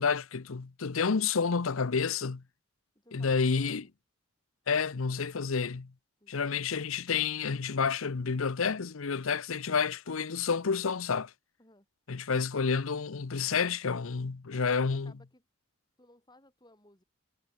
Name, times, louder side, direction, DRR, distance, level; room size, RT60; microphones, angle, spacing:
voice 1, 0.0-2.4 3.1-3.8 4.7-5.9 6.3-11.3 12.1-15.1, left 5 dB, 75° left, 0.7 m, -29 dB
voice 2, 2.9-3.9 6.2-6.5 11.6-11.9 14.5-15.4 16.0-17.0, left 1 dB, 20° left, 7.6 m, -60 dB
head